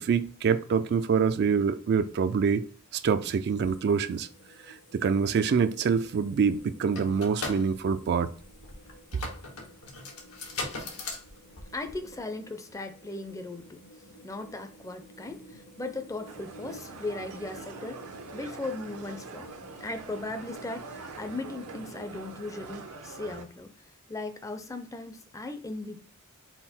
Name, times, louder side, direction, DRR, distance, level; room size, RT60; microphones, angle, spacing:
voice 1, 0.0-2.6 2.9-4.3 4.7-8.3, right 6 dB, 50° right, 0.3 m, -25 dB
sound 1, 3.6-22.9, right 1 dB, 60° left, 0.9 m, -52 dB
sound 2, 6.5-12.2, left 3 dB, 80° left, 1.3 m, -39 dB
voice 2, 11.7-19.5 19.8-23.7 24.1-26.0, left 2 dB, 15° left, 0.5 m, -38 dB
sound 3, 16.3-23.4, right 4 dB, 80° right, 0.7 m, -44 dB
5.5 x 2.1 x 4.3 m
head